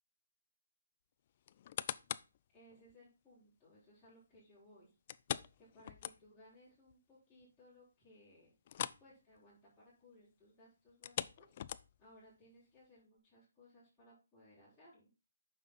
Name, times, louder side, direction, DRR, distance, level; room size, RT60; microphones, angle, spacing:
sound 1, 1.5-2.4 2.9-3.0 5.1-6.5 6.9-7.0 7.4-7.5 8.6-9.1 9.4-9.6 10.9-12.1 12.8-12.9, left 10 dB, 30° left, 0.3 m, -42 dB
voice 1, 2.5-4.9 5.6-8.5 9.0-11.6 12.0-15.1, left 1 dB, ahead, -17 dB, 4.5 m, -63 dB
8.9 x 5.8 x 4.0 m, 0.30 s
hypercardioid pair, 170°, 0 cm